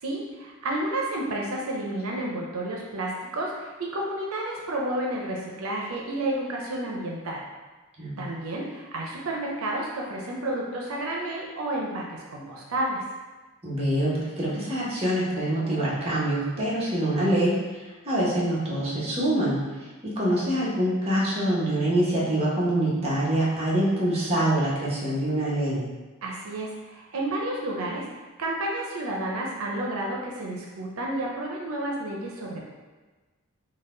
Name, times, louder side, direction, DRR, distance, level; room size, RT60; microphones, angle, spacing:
voice 1, 0.0-7.4 8.2-13.0 26.2-28.1 28.4-32.6, right 1 dB, 85° right, -2 dB, 0.6 m, -31 dB
voice 2, 13.6-25.8, right 1 dB, 30° right, -7 dB, 1.0 m, -25 dB
4.0 x 2.2 x 3.7 m, 1.3 s
head